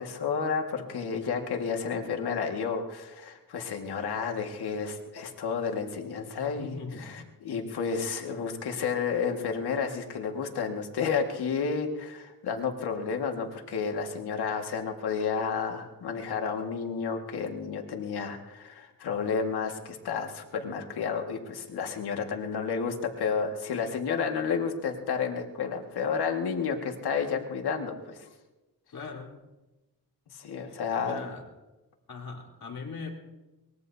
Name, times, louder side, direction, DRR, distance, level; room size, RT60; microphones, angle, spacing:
voice 1, 0.0-28.3 30.3-31.3, left 6 dB, 90° left, 3 dB, 2.0 m, -31 dB
voice 2, 6.4-7.6 28.9-29.4 30.7-31.4 32.1-33.1, left 4 dB, 65° left, 0 dB, 4.1 m, -41 dB
23.0 x 21.0 x 2.8 m, 1.1 s
cardioid pair, 75°, 38 cm